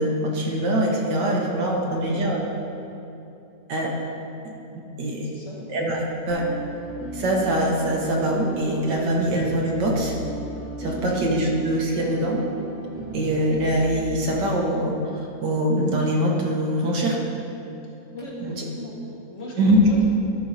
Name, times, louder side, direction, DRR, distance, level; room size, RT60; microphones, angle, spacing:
voice 1, 0.0-2.4 3.7-3.9 5.0-5.3 5.7-6.4 7.1-10.2 10.8-12.4 13.1-17.2 18.4-18.6 19.6-19.8, right 1 dB, 75° right, -1 dB, 1.8 m, -23 dB
voice 2, 1.8-2.2 5.2-5.7 10.9-11.2 18.1-19.0 19.3-20.0, left 1 dB, 45° left, -5 dB, 1.8 m, -37 dB
sound 1, 6.3-13.9, right 2 dB, 10° right, 1.1 m, -35 dB
12.5 x 5.7 x 4.1 m, 2.8 s
omnidirectional pair, 1.9 m